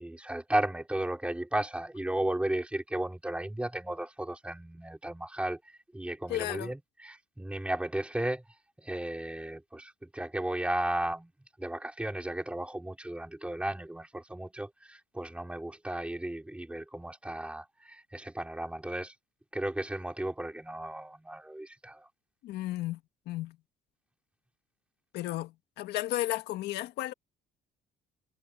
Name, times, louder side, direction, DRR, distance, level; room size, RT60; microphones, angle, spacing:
voice 1, 0.0-5.6 5.9-8.4 8.8-11.3 11.6-19.1 19.5-22.1, right 1 dB, 5° right, 4.1 m, -34 dB
voice 2, 6.3-6.7 22.4-23.0 23.3-23.6 25.1-27.1, left 15 dB, 80° left, 1.6 m, -33 dB
cardioid pair, 110°, 17 cm